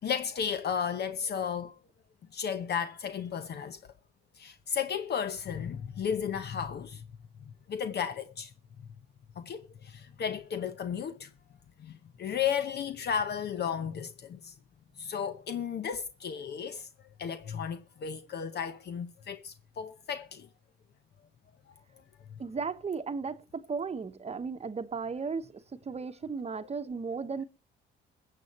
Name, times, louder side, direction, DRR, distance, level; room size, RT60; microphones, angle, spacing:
voice 1, 0.0-1.7 2.3-3.8 4.4-7.0 7.7-8.5 9.4-11.3 11.8-14.5 15.0-16.9 17.2-20.5, left 7 dB, 55° left, 0.8 m, -34 dB
voice 2, 22.4-27.4, right 5 dB, 30° right, 1.0 m, -35 dB
22.0 x 7.7 x 4.2 m
cardioid pair, 90°, 20 cm